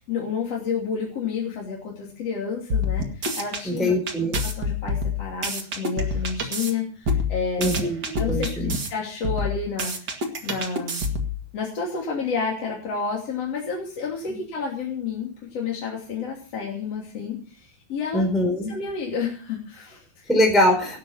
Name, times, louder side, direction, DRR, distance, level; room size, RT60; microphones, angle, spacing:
voice 1, 0.0-3.9 4.2-7.9 8.2-11.0 11.5-18.3 18.7-20.3, left 5 dB, 35° left, -2 dB, 3.3 m, -30 dB
sound 1, 2.7-3.6 4.1-6.7 7.0-8.9 9.2-11.4, left 2 dB, 50° right, 1.1 m, -26 dB
voice 2, 3.6-4.4 7.6-8.0 8.3-8.7 14.3-14.4 18.1-18.7 20.3-21.0, left 1 dB, ahead, 0 dB, 3.7 m, -22 dB
18.0 x 9.4 x 5.7 m, 0.39 s
omnidirectional pair, 5.5 m